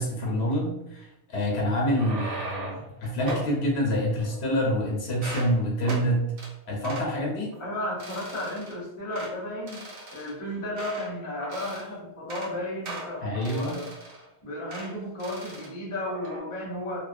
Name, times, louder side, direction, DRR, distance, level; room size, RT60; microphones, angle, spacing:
voice 1, 0.0-6.2 6.7-7.5 13.2-13.8, equal, 85° left, -2 dB, 0.9 m, -27 dB
sound 1, 1.8-2.9 3.3-3.5 4.2-4.8 5.1-5.5 5.8-6.1 6.4-6.5 6.8-7.1 7.5-7.7 8.0-8.7 9.1-9.3 9.7-11.1 11.4-11.9 12.2-12.5 12.8-14.3 14.7-14.9 15.2-15.7 16.0-16.4, right 1 dB, 60° right, 0.8 m, -38 dB
voice 2, 7.6-9.8 10.1-13.9 14.4-17.0, left 1 dB, 35° left, -4 dB, 0.8 m, -34 dB
2.3 x 2.2 x 2.4 m, 0.87 s
omnidirectional pair, 1.1 m